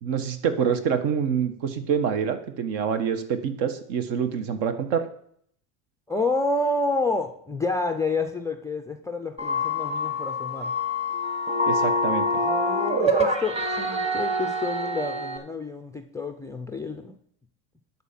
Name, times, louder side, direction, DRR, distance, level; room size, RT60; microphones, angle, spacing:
voice 1, 0.0-5.0 11.6-12.3, right 7 dB, 65° right, 9 dB, 1.4 m, -26 dB
voice 2, 6.1-10.7 12.3-17.2, left 3 dB, 10° left, 6 dB, 0.3 m, -29 dB
sound 1, 9.4-15.4, left 1 dB, 15° right, 1.1 m, -26 dB
11.0 x 4.2 x 7.4 m, 0.66 s
supercardioid pair, 130°, 45 cm